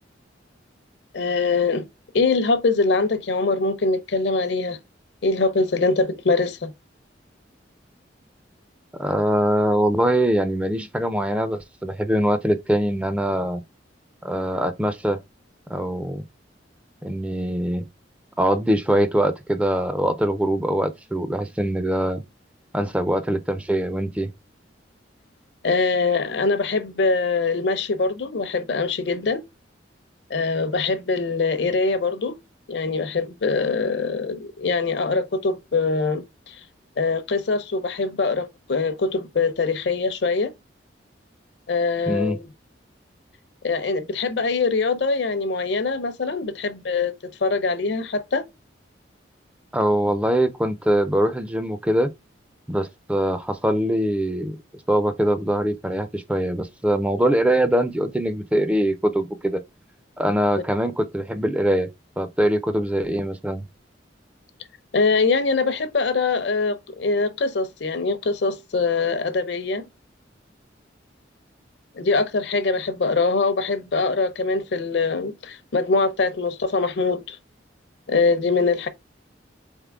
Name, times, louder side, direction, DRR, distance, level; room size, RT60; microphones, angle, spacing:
voice 1, 1.1-1.8 2.1-4.8 5.2-6.7 25.6-29.4 30.3-32.4 32.7-36.6 37.0-40.5 41.7-42.4 43.6-48.4 64.9-69.9 72.0-77.4 78.1-78.9, left 4 dB, 65° left, 0.6 m, -23 dB
voice 2, 9.0-13.6 14.2-15.2 15.7-16.2 17.0-17.9 18.4-22.2 22.7-24.3 42.1-42.4 49.7-52.1 52.7-54.6 54.9-59.6 60.2-61.9 62.2-63.6, right 1 dB, 5° right, 0.4 m, -22 dB
3.9 x 3.6 x 3.5 m
head